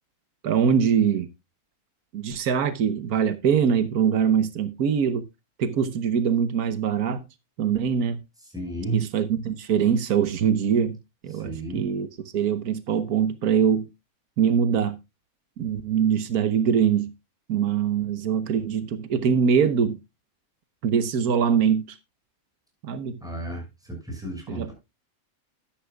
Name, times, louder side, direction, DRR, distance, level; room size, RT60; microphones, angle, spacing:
voice 1, 0.4-1.3 2.1-5.2 5.6-7.2 7.6-8.2 8.9-11.0 11.2-12.1 12.3-13.9 14.4-15.0 15.6-17.1 17.5-20.0 20.8-22.0 22.8-23.2 24.5-24.7, right 7 dB, 90° right, 1.5 m, -23 dB
voice 2, 8.5-9.0 11.3-11.8 23.2-24.7, right 2 dB, ahead, 6.0 m, -32 dB
12.0 x 12.0 x 2.3 m
omnidirectional pair, 1.5 m